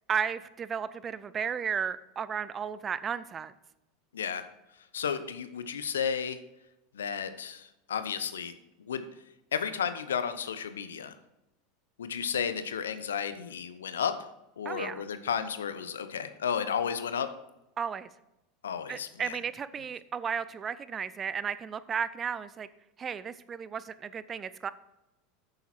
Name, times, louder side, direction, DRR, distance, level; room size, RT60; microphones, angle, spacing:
voice 1, 0.1-3.5 14.6-15.1 17.8-18.1 18.9-22.7 23.0-24.7, right 7 dB, 30° right, 16 dB, 0.5 m, -34 dB
voice 2, 4.9-6.4 6.9-8.5 8.9-9.0 9.5-11.1 12.0-14.3 14.6-17.3 18.6-19.4, left 7 dB, 80° left, 12 dB, 0.7 m, -33 dB
9.0 x 7.1 x 4.4 m, 0.93 s
hypercardioid pair, 85°, 0 cm